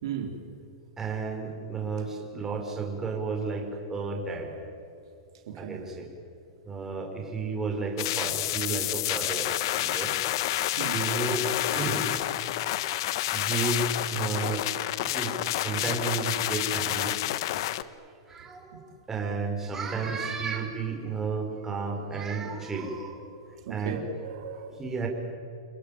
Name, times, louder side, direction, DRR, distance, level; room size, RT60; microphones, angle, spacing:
voice 1, 0.0-0.4 5.5-5.8 10.8-11.0 23.7-24.8, right 6 dB, 75° right, 4 dB, 3.8 m, -36 dB
voice 2, 1.0-4.6 5.6-6.1 6.6-9.5 9.8-10.1 10.9-12.1 12.7-12.8 13.3-14.7 15.0-17.4 18.3-23.3 23.7-24.0 24.8-25.1, right 4 dB, 15° right, 1 dB, 5.5 m, -32 dB
sound 1, 8.0-17.8, left 15 dB, 60° left, 1.2 m, -29 dB
29.5 x 20.5 x 9.4 m, 2.6 s
hypercardioid pair, 130°, 3 cm